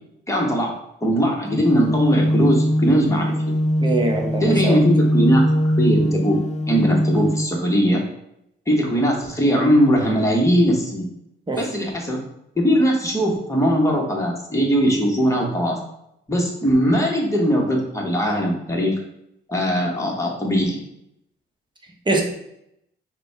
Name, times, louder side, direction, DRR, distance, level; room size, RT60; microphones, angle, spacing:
voice 1, 0.3-0.7 1.0-3.5 4.4-6.4 6.7-8.0 8.7-11.1 11.6-12.2 12.5-15.8 16.3-18.9 19.5-20.8, equal, 15° left, -1 dB, 1.2 m, -20 dB
sound 1, 1.5-7.4, equal, 35° left, 0.4 m, -21 dB
voice 2, 3.8-4.8 11.5-11.6 22.1-22.2, right 2 dB, 25° right, 1 dB, 0.9 m, -22 dB
5.0 x 2.3 x 4.5 m, 0.79 s
cardioid pair, 90°, 20 cm